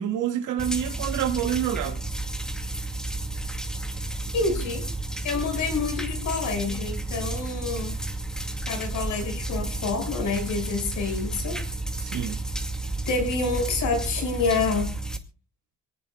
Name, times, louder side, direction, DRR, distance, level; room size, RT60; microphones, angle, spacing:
voice 1, 0.0-2.0 12.0-12.4, right 10 dB, 85° right, 2.0 m, -27 dB
sound 1, 0.6-15.2, right 2 dB, ahead, 2.3 m, -32 dB
voice 2, 4.3-4.8 5.2-8.0 8.7-11.6 13.1-14.9, left 4 dB, 75° left, 6.4 m, -27 dB
25.5 x 18.5 x 2.4 m
cardioid pair, 90°, 30 cm